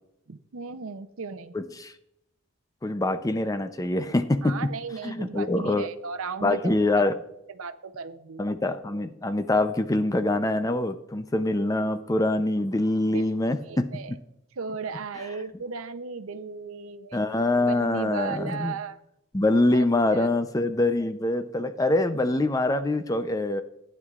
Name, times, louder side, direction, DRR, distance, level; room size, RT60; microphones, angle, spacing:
voice 1, 0.3-1.6 4.4-7.0 7.5-8.5 13.1-13.3 13.6-14.1 14.6-17.2 17.7-19.0 19.7-19.8 20.1-20.3, right 5 dB, 85° right, 10 dB, 0.7 m, -36 dB
voice 2, 1.5-1.9 2.8-4.6 5.0-5.9 6.4-7.2 8.4-14.2 17.1-18.7 19.3-23.6, left 2 dB, 15° left, 10 dB, 0.5 m, -24 dB
15.0 x 9.7 x 2.4 m, 0.83 s
head